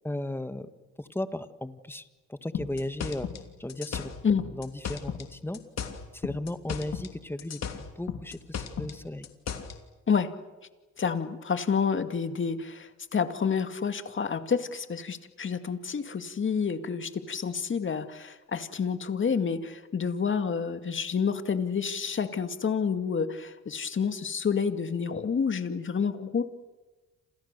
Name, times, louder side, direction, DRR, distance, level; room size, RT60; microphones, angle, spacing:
voice 1, 0.0-0.7 1.0-3.3 3.6-4.1 4.5-5.6 6.1-9.3, left 1 dB, 5° left, 10 dB, 1.7 m, -35 dB
sound 1, 2.5-5.3 5.5-7.1 7.4-9.8, left 7 dB, 60° left, 3.1 m, -35 dB
voice 2, 11.0-26.4, left 6 dB, 40° left, 8 dB, 2.2 m, -29 dB
29.5 x 27.5 x 6.9 m, 1.2 s
cardioid pair, 90°, 30 cm